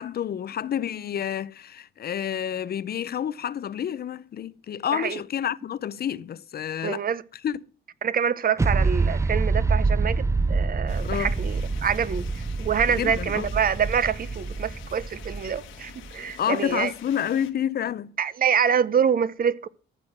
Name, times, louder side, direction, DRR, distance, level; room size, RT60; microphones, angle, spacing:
voice 1, 0.0-7.1 7.4-7.6 11.0-11.3 13.0-13.5 16.4-18.1, left 9 dB, 50° left, 0.7 m, -29 dB
voice 2, 6.8-7.2 8.0-16.9 18.2-19.7, right 7 dB, 45° right, 0.9 m, -26 dB
sound 1, 8.6-16.1, right 3 dB, 15° right, 0.5 m, -26 dB
sound 2, 10.9-17.5, left 10 dB, 75° left, 1.6 m, -47 dB
14.5 x 6.3 x 7.3 m
cardioid pair, 90°, 20 cm